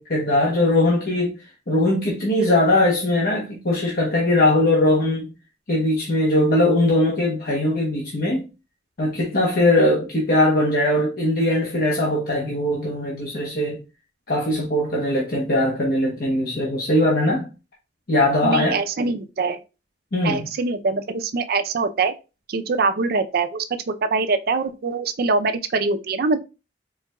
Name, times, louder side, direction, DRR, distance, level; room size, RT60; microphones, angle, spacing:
voice 1, 0.0-1.3 1.7-5.3 5.7-8.4 9.0-13.8 14.3-17.5 18.1-18.8 20.1-20.4, left 1 dB, 60° left, 0.9 m, -20 dB
voice 2, 18.4-19.6 20.2-22.1 22.5-26.4, right 4 dB, 60° right, 0.5 m, -23 dB
4.4 x 3.7 x 2.2 m
head